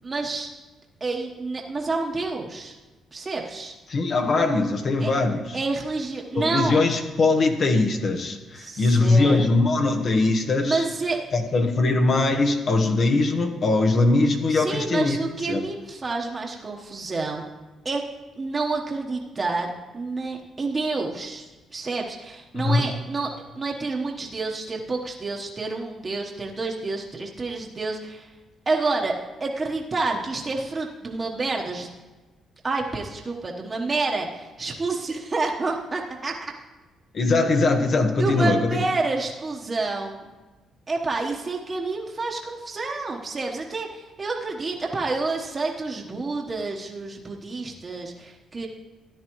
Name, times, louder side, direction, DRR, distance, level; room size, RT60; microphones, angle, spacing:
voice 1, 0.0-0.5 1.0-2.8 3.1-3.7 5.0-5.1 5.5-6.9 8.5-9.4 10.6-11.2 14.5-17.4 17.8-18.0 18.3-19.7 19.9-21.4 21.7-23.3 23.6-28.3 28.7-29.1 29.4-31.9 32.6-36.3 38.2-40.3 40.9-48.7, right 3 dB, 30° right, -1 dB, 1.1 m, -28 dB
voice 2, 3.9-5.6 6.3-10.8 11.3-15.2 15.5-15.6 22.5-22.9 37.1-38.8, left 3 dB, 55° left, 4 dB, 1.2 m, -21 dB
13.5 x 10.0 x 3.1 m, 1.2 s
cardioid pair, 90°, 0 cm